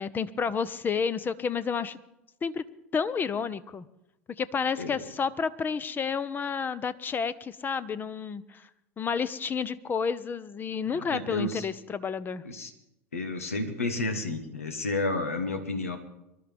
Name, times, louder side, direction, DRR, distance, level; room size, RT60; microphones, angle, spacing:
voice 1, 0.0-2.0 2.4-2.6 2.9-3.9 4.4-8.7 9.0-12.4, left 6 dB, 25° left, 17 dB, 0.8 m, -30 dB
voice 2, 10.9-11.7 12.4-12.7 13.1-16.0, left 2 dB, 90° left, 8 dB, 1.5 m, -31 dB
25.0 x 12.0 x 3.5 m, 0.89 s
hypercardioid pair, 85°, 7 cm